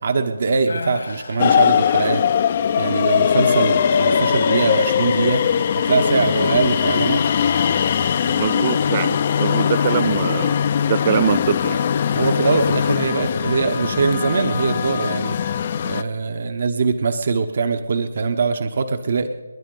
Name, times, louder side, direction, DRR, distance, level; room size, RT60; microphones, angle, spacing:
voice 1, 0.0-2.2 2.8-5.4 5.8-7.2 12.1-15.4 15.8-19.3, right 4 dB, 50° right, 1.0 m, -22 dB
sound 1, 0.7-2.4 2.9-3.2 3.8-5.6 7.5-8.8 10.8-11.9 12.4-12.8, left 3 dB, 75° left, 2.7 m, -38 dB
sound 2, 1.4-16.0, left 8 dB, 35° left, 0.6 m, -20 dB
voice 2, 8.2-11.9, right 10 dB, 30° right, 0.3 m, -23 dB
29.5 x 10.5 x 3.9 m
figure-of-eight pair, 160°, 0 cm